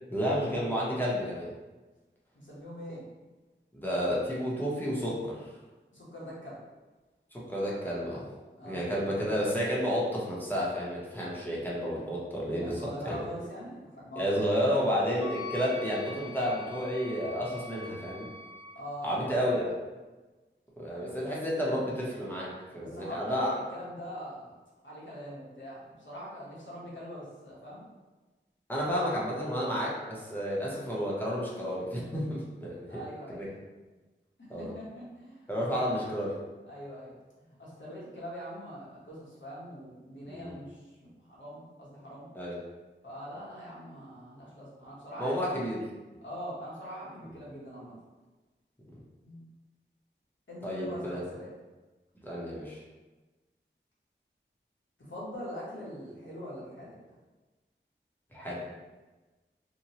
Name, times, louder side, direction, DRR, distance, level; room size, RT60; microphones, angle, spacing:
voice 1, 0.1-1.5 3.7-5.5 7.3-8.3 8.6-13.2 14.2-18.3 19.0-19.7 20.8-23.5 28.7-33.0 33.3-33.5 34.5-34.7 35.5-36.3 40.3-40.5 42.3-42.6 45.2-45.8 50.6-51.2 52.2-52.8 58.3-58.6, equal, 10° left, -6 dB, 0.8 m, -31 dB
voice 2, 2.3-3.0 5.9-6.6 8.6-9.4 12.5-14.5 18.7-19.4 20.9-21.1 22.8-24.5 24.8-27.8 28.9-29.1 32.9-33.5 34.4-36.0 36.7-42.3 43.0-45.6 46.2-47.9 49.2-49.4 50.5-51.5 55.0-57.0, equal, 70° left, -7 dB, 1.0 m, -43 dB
Wind instrument woodwind instrument, 15.2-18.8, left 3 dB, 30° right, 0.5 m, -44 dB
2.9 x 2.2 x 2.8 m, 1.2 s
wide cardioid pair, 50°, 20 cm